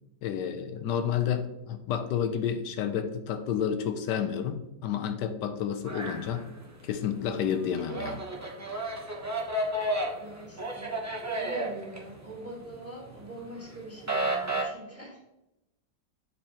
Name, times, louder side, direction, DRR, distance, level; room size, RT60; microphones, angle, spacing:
voice 1, 0.2-6.5 6.8-8.3, left 8 dB, 90° left, 7 dB, 1.2 m, -30 dB
sound 1, 5.8-6.9 7.3-12.7 13.1-14.6, right 1 dB, 25° right, 0.3 m, -32 dB
voice 2, 10.2-10.9 11.3-15.2, right 1 dB, 10° left, -3 dB, 2.1 m, -43 dB
7.2 x 4.7 x 2.9 m, 0.92 s
omnidirectional pair, 1.8 m